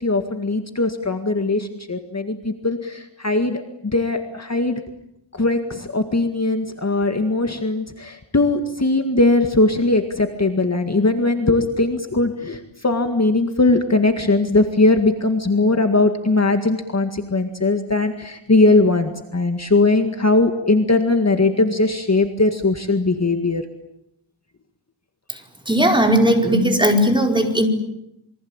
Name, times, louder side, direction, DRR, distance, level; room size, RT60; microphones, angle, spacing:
voice 1, 0.0-3.6 3.9-4.8 5.3-23.6, left 2 dB, 30° left, 6 dB, 2.0 m, -19 dB
voice 2, 25.7-27.7, equal, 10° right, 3 dB, 5.0 m, -17 dB
28.0 x 23.5 x 8.9 m, 0.83 s
wide cardioid pair, 115°, 50 cm